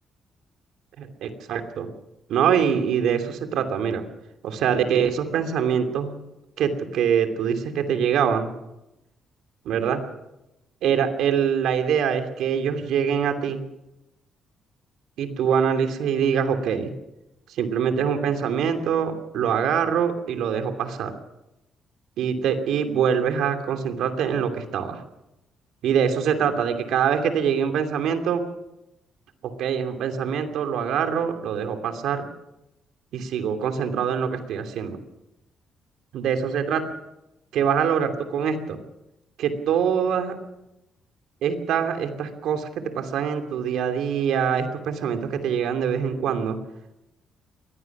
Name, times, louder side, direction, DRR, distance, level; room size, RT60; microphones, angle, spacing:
voice 1, 1.0-1.9 2.3-4.0 4.4-6.2 6.6-8.5 9.6-10.0 10.8-13.6 15.2-16.9 17.5-21.1 22.2-25.0 25.8-28.4 29.4-32.3 33.1-35.0 36.1-36.8 37.5-38.8 39.4-40.4 41.4-46.6, right 7 dB, 80° right, 6 dB, 2.7 m, -24 dB
23.0 x 18.5 x 6.1 m, 0.93 s
cardioid pair, 90°, 0 cm